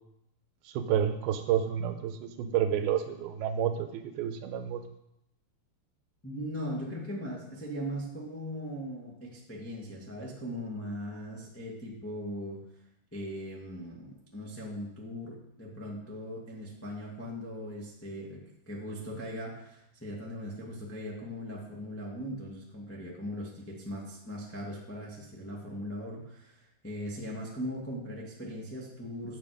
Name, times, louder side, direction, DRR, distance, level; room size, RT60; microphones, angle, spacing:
voice 1, 0.7-4.8, right 9 dB, 80° right, 8 dB, 2.7 m, -30 dB
voice 2, 6.2-12.6 13.1-29.4, equal, 20° left, -3 dB, 0.4 m, -39 dB
11.0 x 7.6 x 5.1 m, 0.82 s
omnidirectional pair, 4.5 m